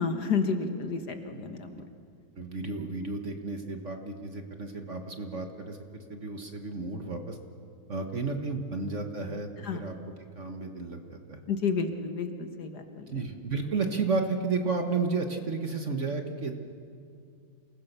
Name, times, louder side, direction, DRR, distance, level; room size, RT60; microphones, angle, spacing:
voice 1, 0.0-1.8 9.6-9.8 11.5-13.1, left 5 dB, 55° left, 6 dB, 1.8 m, -30 dB
voice 2, 2.4-5.8 6.1-7.4 7.9-9.9 10.4-11.4 13.1-16.5, right 4 dB, 40° right, 4 dB, 1.6 m, -32 dB
28.0 x 19.5 x 6.7 m, 2.3 s
omnidirectional pair, 2.1 m